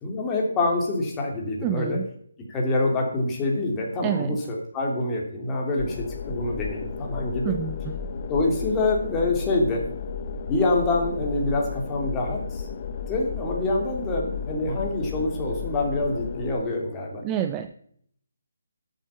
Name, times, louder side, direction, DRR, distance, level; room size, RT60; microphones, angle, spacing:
voice 1, 0.0-2.0 2.5-7.5 8.3-9.8 10.5-12.7 13.1-17.2, left 2 dB, 15° left, -1 dB, 3.0 m, -26 dB
voice 2, 1.6-2.1 4.0-4.4 7.4-8.0 17.2-17.7, right 10 dB, 15° right, 8 dB, 0.6 m, -28 dB
sound 1, 5.8-16.6, left 6 dB, 40° left, 1.1 m, -34 dB
12.5 x 8.2 x 7.0 m, 0.64 s
hypercardioid pair, 165°, 0 cm